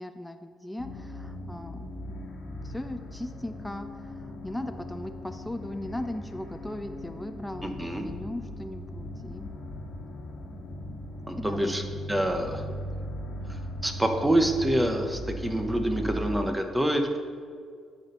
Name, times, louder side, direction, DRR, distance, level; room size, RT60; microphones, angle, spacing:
voice 1, 0.0-2.2 2.6-9.5 11.4-12.0, left 1 dB, 5° left, 8 dB, 0.4 m, -38 dB
sound 1, 0.8-16.4, equal, 60° left, 1.3 m, -39 dB
voice 2, 7.6-8.0 11.3-11.8 12.1-12.6 13.5-17.2, right 1 dB, 10° right, 5 dB, 0.8 m, -26 dB
9.8 x 4.3 x 6.6 m, 2.1 s
cardioid pair, 90°, 0 cm